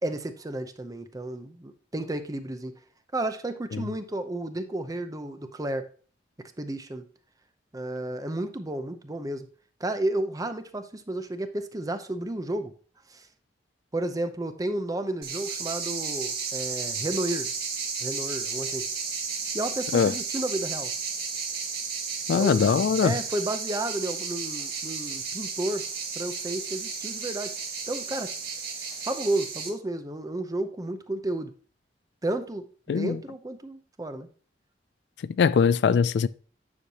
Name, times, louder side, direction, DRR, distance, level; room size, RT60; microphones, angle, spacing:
voice 1, 0.0-2.7 3.1-5.9 6.6-7.0 7.7-9.5 9.8-12.7 13.1-13.3 13.9-17.5 18.0-18.9 19.5-20.9 22.4-22.6 23.0-25.8 26.2-27.5 27.9-28.3 29.0-31.5 32.2-34.3, right 1 dB, 20° right, 0.7 m, -32 dB
sound 1, 15.2-29.7, right 5 dB, 60° right, 1.9 m, -33 dB
voice 2, 22.3-23.1 32.9-33.2 35.2-36.3, left 6 dB, 65° left, 0.3 m, -22 dB
9.6 x 6.4 x 2.9 m
head